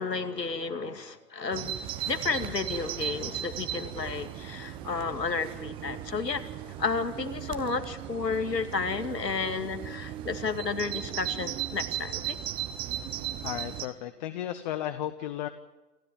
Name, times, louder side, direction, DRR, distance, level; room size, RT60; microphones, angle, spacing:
voice 1, 0.0-6.4 6.8-12.4, left 4 dB, 85° left, 8 dB, 2.5 m, -32 dB
Bird vocalization bird call bird song, 1.5-13.9, right 12 dB, 10° right, 0.7 m, -37 dB
voice 2, 13.4-15.5, left 12 dB, 30° left, 10 dB, 1.0 m, -34 dB
28.5 x 13.5 x 9.4 m, 1.1 s
figure-of-eight pair, 130°, 48 cm